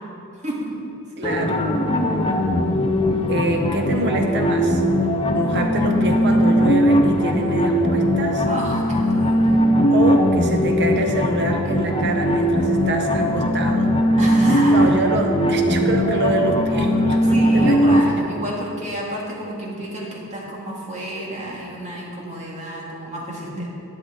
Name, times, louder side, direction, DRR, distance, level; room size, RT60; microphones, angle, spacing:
voice 1, 0.4-0.7 1.2-1.4 8.5-9.5 14.2-14.7 17.3-23.7, right 1 dB, 30° right, -4 dB, 2.1 m, -30 dB
sound 1, 1.2-18.0, equal, 25° left, 0.7 m, -19 dB
voice 2, 1.2-1.7 3.3-4.8 5.3-8.5 9.9-13.9 14.7-18.1 23.6-23.7, right 1 dB, 50° right, 3 dB, 1.1 m, -25 dB
11.5 x 9.7 x 3.9 m, 2.7 s
head